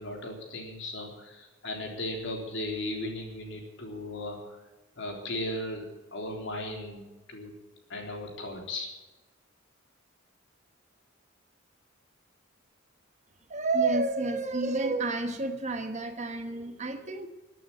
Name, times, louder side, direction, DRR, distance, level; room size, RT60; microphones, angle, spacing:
voice 1, 0.0-4.6 5.0-7.5 7.9-8.9, left 1 dB, 60° left, 2 dB, 3.6 m, -36 dB
voice 2, 13.5-17.3, right 3 dB, 35° right, 8 dB, 1.2 m, -29 dB
14.5 x 9.1 x 9.8 m, 1.1 s
head